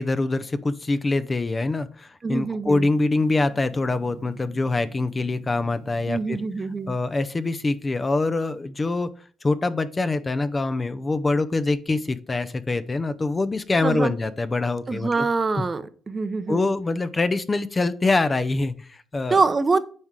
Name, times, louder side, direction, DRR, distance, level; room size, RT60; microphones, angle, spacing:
voice 1, 0.0-9.1 9.4-15.3 15.6-15.7 16.5-19.4, left 3 dB, 25° left, 12 dB, 0.6 m, -24 dB
voice 2, 2.2-2.8 6.1-6.9 13.8-14.1 14.9-16.7 19.3-19.8, right 4 dB, 30° right, 13 dB, 0.7 m, -24 dB
Gong, 2.7-8.5, right 9 dB, 85° right, 1.8 m, -46 dB
9.5 x 3.7 x 4.7 m, 0.42 s
cardioid pair, 90°, 0 cm